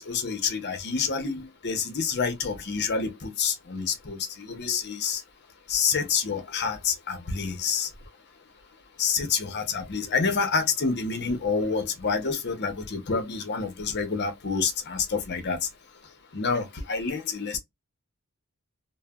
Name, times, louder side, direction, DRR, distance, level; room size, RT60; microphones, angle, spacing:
voice 1, 0.0-5.2 5.7-7.9 9.0-15.6 16.3-17.6, left 5 dB, 50° left, 0.8 m, -28 dB
3.1 x 2.1 x 2.2 m
head